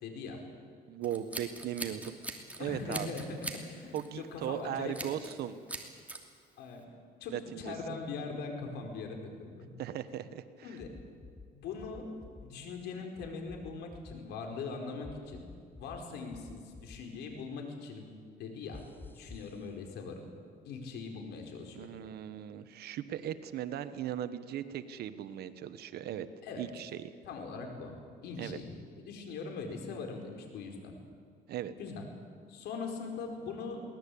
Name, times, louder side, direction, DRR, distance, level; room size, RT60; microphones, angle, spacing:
voice 1, 0.0-0.4 2.6-5.1 6.6-6.8 7.2-9.7 10.6-11.0 11.5-12.1 12.4-15.5 15.8-18.8 19.1-20.2 20.6-21.9 26.4-26.7 27.2-28.0 28.2-31.0 31.8-32.1 32.5-33.8, left 4 dB, 80° left, 3 dB, 4.6 m, -41 dB
voice 2, 0.9-2.2 2.6-3.1 3.9-5.5 7.3-7.7 9.8-10.7 21.7-26.3 26.6-27.1 28.4-28.6 31.5-31.7, right 10 dB, 70° right, 12 dB, 1.2 m, -38 dB
Scissors, 1.0-2.6 2.9-3.6 3.9-4.2 4.9-5.4 5.7-6.2, right 2 dB, 10° right, 2.7 m, -41 dB
sound 1, 10.8-11.5 11.8-12.4 13.2-14.1 15.0-16.0 16.3-17.0 18.7-19.5, left 3 dB, 10° left, 1.3 m, -49 dB
22.5 x 18.5 x 8.5 m, 2.1 s
cardioid pair, 110°, 17 cm